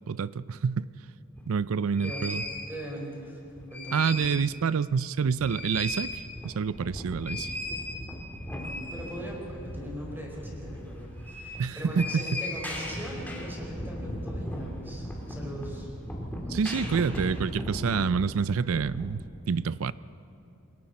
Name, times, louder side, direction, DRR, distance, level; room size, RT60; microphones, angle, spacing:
voice 1, 0.1-0.9 1.5-2.4 3.9-7.5 11.6-12.4 16.5-19.2 19.5-19.9, right 6 dB, 70° right, 17 dB, 0.5 m, -27 dB
sound 1, 1.3-1.4 2.0-2.6 3.5-4.5 4.8-4.9 5.2-19.1, left 1 dB, 10° left, 2.7 m, -37 dB
voice 2, 2.6-4.0 8.5-15.9, equal, 10° right, -2 dB, 4.8 m, -40 dB
28.0 x 22.0 x 4.3 m, 2.7 s
head